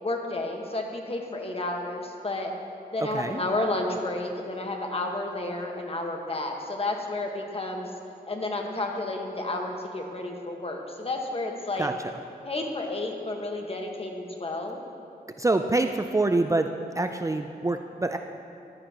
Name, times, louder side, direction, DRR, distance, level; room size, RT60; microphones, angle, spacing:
voice 1, 0.0-2.5 2.9-7.9 8.3-11.9 12.4-14.8, left 2 dB, 35° left, 2 dB, 1.5 m, -31 dB
voice 2, 15.4-16.7 17.0-18.2, right 2 dB, 20° right, 6 dB, 0.4 m, -25 dB
14.0 x 12.0 x 3.0 m, 2.7 s
cardioid pair, 65°, 16 cm